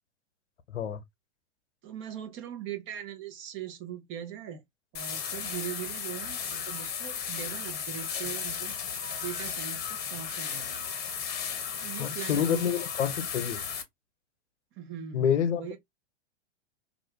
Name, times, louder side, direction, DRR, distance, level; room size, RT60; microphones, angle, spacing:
voice 1, 1.8-4.6 4.9-8.8 9.2-10.7 11.8-12.8 14.8-15.8, right 10 dB, 35° right, 0.9 m, -40 dB
sound 1, 4.9-13.8, left 7 dB, 25° left, 0.9 m, -35 dB
voice 2, 12.0-13.6 15.1-15.8, left 8 dB, 80° left, 0.8 m, -28 dB
2.5 x 2.5 x 3.2 m
hypercardioid pair, 105°, 35 cm